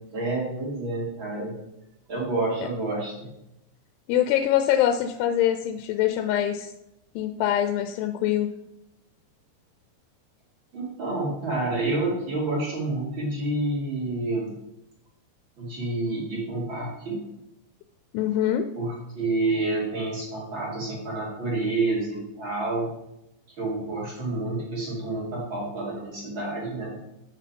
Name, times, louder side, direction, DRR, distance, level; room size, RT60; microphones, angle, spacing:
voice 1, 0.1-1.5 2.1-3.3 10.7-14.5 15.6-17.2 18.8-22.9 23.6-26.9, right 2 dB, 40° right, -4 dB, 2.2 m, -29 dB
voice 2, 4.1-6.7 7.2-8.5 18.1-18.7, left 11 dB, 85° left, 8 dB, 2.6 m, -24 dB
7.6 x 6.2 x 5.2 m, 0.86 s
omnidirectional pair, 4.8 m